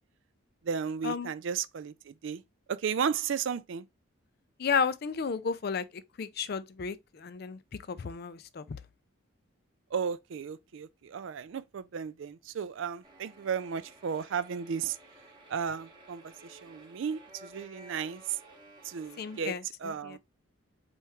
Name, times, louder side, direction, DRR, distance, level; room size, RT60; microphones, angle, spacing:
voice 1, 0.6-2.4 2.7-3.9 9.9-15.0 15.5-18.4 18.8-20.2, right 7 dB, 60° right, 0.3 m, -34 dB
voice 2, 4.6-7.6 7.9-8.6 19.2-20.2, left 6 dB, 50° left, 0.4 m, -33 dB
sound 1, 13.0-19.4, right 1 dB, 20° right, 1.0 m, -54 dB
4.4 x 3.5 x 2.9 m
head